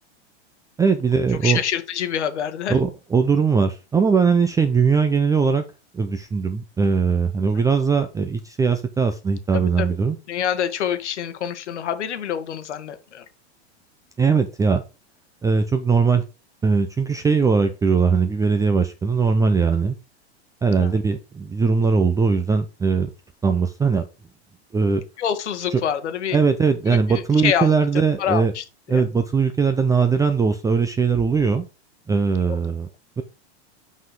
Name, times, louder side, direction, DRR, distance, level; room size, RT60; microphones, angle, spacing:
voice 1, 0.8-1.6 2.7-5.6 5.9-10.2 14.2-14.8 15.4-16.2 16.6-20.0 20.6-23.1 23.4-24.1 24.7-25.0 25.7-25.8 26.3-28.5 28.9-31.6 32.1-32.9 33.2-33.3, right 5 dB, 10° right, 0.5 m, -20 dB
voice 2, 1.3-2.8 7.5-7.6 9.5-10.0 10.3-13.2 20.8-21.0 25.2-26.4 26.9-29.0 32.4-32.6, left 9 dB, 85° left, 1.4 m, -27 dB
5.9 x 5.5 x 4.8 m
hypercardioid pair, 120°, 34 cm